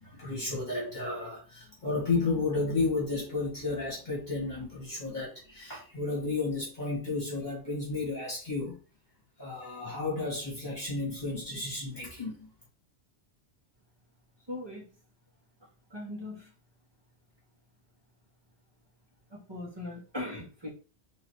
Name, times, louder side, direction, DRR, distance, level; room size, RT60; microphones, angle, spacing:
voice 1, 0.0-8.8 9.4-12.5, left 3 dB, 40° left, 1.9 m, -32 dB
voice 2, 14.5-14.9 15.6-16.5 19.3-20.7, left 1 dB, 20° right, 1.7 m, -40 dB
4.0 x 3.8 x 3.0 m
omnidirectional pair, 1.2 m